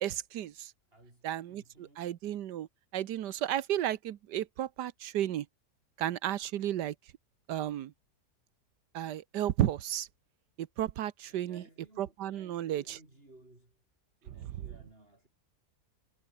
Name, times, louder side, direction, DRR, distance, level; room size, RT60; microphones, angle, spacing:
voice 1, 0.0-0.7 1.2-2.7 2.9-5.5 6.0-6.9 7.5-7.9 8.9-10.1 10.6-11.6 12.0-13.0, right 12 dB, 90° right, 1.5 m, -33 dB
voice 2, 0.9-2.1 11.3-13.8 14.2-15.3, right 2 dB, 35° right, 6.0 m, -58 dB
omnidirectional pair, 1.7 m